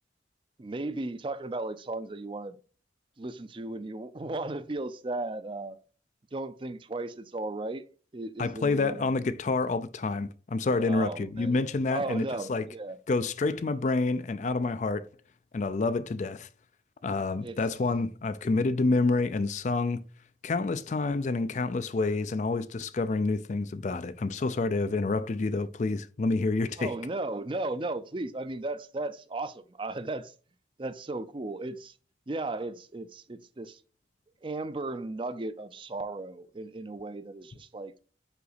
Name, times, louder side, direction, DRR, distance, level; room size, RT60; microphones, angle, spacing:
voice 1, 0.6-2.6 3.2-5.8 6.3-7.8 8.1-9.1 10.8-11.6 11.9-13.0 17.4-17.6 26.8-30.3 30.8-31.9 32.3-33.8 34.4-37.9, right 2 dB, 30° right, 0.5 m, -35 dB
voice 2, 8.4-12.7 13.1-15.1 15.5-16.5 17.0-20.0 20.4-26.9, left 3 dB, 40° left, 0.4 m, -28 dB
5.7 x 5.1 x 4.0 m
head